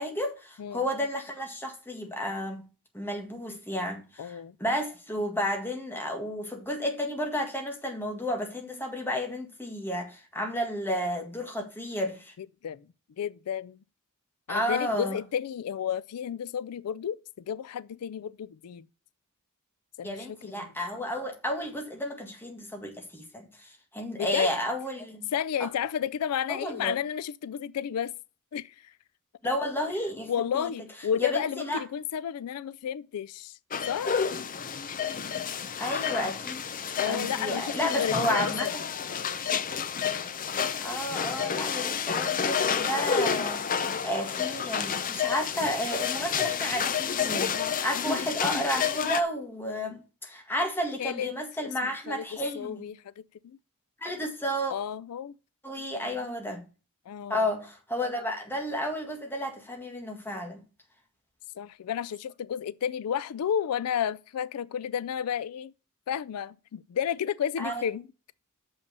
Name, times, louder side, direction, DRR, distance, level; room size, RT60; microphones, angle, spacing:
voice 1, 0.0-2.7 2.9-12.3 14.5-15.2 20.0-25.3 25.6-25.7 26.5-27.0 29.4-30.7 31.2-31.8 35.8-36.6 37.1-38.9 40.8-52.9 54.0-54.7 55.6-56.6 57.3-60.6 67.6-67.8, left 1 dB, 10° left, 1.8 m, -32 dB
voice 2, 4.2-4.5 12.6-12.8 13.2-13.8 14.5-17.2 17.5-18.9 20.0-20.7 24.2-24.5 25.3-28.1 28.5-28.9 30.3-33.6 33.9-34.3 37.0-38.7 51.0-51.3 51.6-53.6 54.7-55.3 56.0-56.2 57.1-57.4 61.6-65.7 66.1-68.0, left 8 dB, 85° left, 0.4 m, -32 dB
sound 1, 33.7-49.2, left 7 dB, 40° left, 0.6 m, -30 dB
6.8 x 5.6 x 6.7 m
head